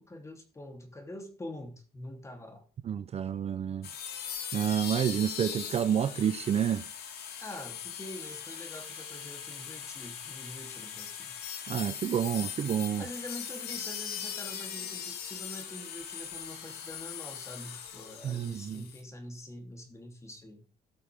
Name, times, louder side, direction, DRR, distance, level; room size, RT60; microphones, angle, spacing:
voice 1, 0.0-2.6 7.4-11.4 13.0-20.6, left 1 dB, 15° left, 3.1 m, -45 dB
voice 2, 2.9-3.9 4.5-6.8 11.7-13.0 18.2-18.8, right 9 dB, 40° right, 0.5 m, -29 dB
sound 1, 3.8-19.0, left 8 dB, 70° left, 2.5 m, -40 dB
18.0 x 6.4 x 3.5 m
cardioid pair, 110°, 17 cm